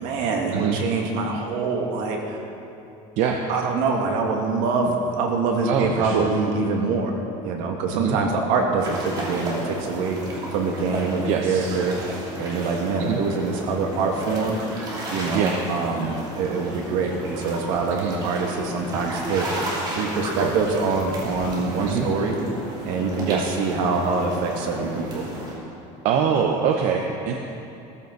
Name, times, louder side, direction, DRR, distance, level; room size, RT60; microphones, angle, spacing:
voice 1, 0.0-2.4 3.5-7.1 7.4-12.1 12.4-14.6 15.1-19.5 19.9-22.4 22.9-25.3, right 4 dB, 70° right, 1 dB, 2.1 m, -25 dB
voice 2, 5.7-6.3 7.9-8.2 11.3-11.8 13.0-13.2 15.3-15.6 17.9-18.1 20.4-20.5 21.9-22.1 23.3-23.5 26.0-27.3, right 7 dB, 55° right, 2 dB, 0.9 m, -23 dB
sound 1, 8.8-25.5, right 1 dB, 30° right, 3.0 m, -33 dB
16.5 x 14.0 x 4.0 m, 2.8 s
cardioid pair, 165°, 14 cm